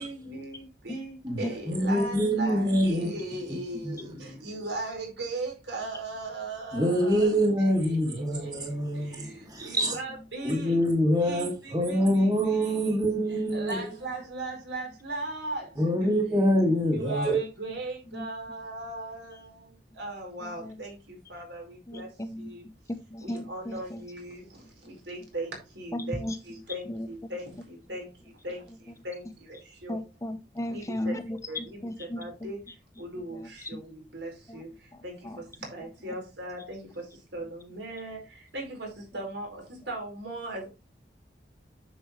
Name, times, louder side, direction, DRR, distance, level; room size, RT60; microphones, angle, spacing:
voice 1, 0.0-10.8 11.2-12.9 13.5-16.1 16.9-22.7 23.2-30.0 30.7-31.2 31.5-32.7 33.0-40.7, right 2 dB, 80° right, 4.8 m, -39 dB
voice 2, 1.7-3.1 3.8-4.0 6.7-10.0 10.4-13.9 15.8-17.4, equal, 20° right, 2.5 m, -25 dB
voice 3, 20.4-20.8 21.9-22.5 22.9-24.0 25.9-26.4 26.9-27.3 29.9-32.5 33.3-33.8 34.5-34.6 34.9-35.4, left 1 dB, 15° left, 0.8 m, -36 dB
10.0 x 7.0 x 3.2 m
head